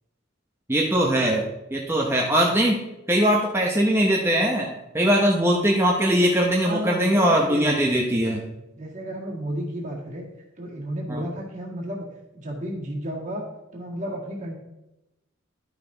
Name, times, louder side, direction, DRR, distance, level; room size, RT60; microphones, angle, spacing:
voice 1, 0.7-2.8 3.1-4.7 4.9-8.4 11.1-11.2, equal, 10° right, -1 dB, 0.8 m, -21 dB
voice 2, 6.6-7.8 8.7-10.3 10.6-12.1 12.3-13.4 13.7-14.6, equal, 35° right, -3 dB, 1.8 m, -32 dB
11.5 x 5.9 x 3.8 m, 0.94 s
head